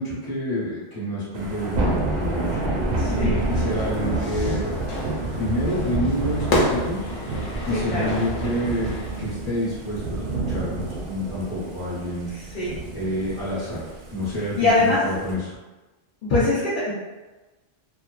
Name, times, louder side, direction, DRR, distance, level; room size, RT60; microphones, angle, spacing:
voice 1, 0.0-2.6 3.1-4.7 5.3-7.1 7.6-12.3 12.9-13.8 14.1-15.5, equal, 20° left, -10 dB, 0.9 m, -28 dB
Thunder / Rain, 1.3-15.3, right 2 dB, 55° right, 0.5 m, -28 dB
voice 2, 3.0-3.4 7.7-8.2 12.3-12.7 14.6-15.0 16.3-16.9, left 3 dB, 55° left, -9 dB, 0.7 m, -22 dB
Fire / Fireworks, 3.7-9.3, left 1 dB, 90° left, 1.0 m, -30 dB
3.0 x 2.1 x 2.3 m, 1.2 s
omnidirectional pair, 1.1 m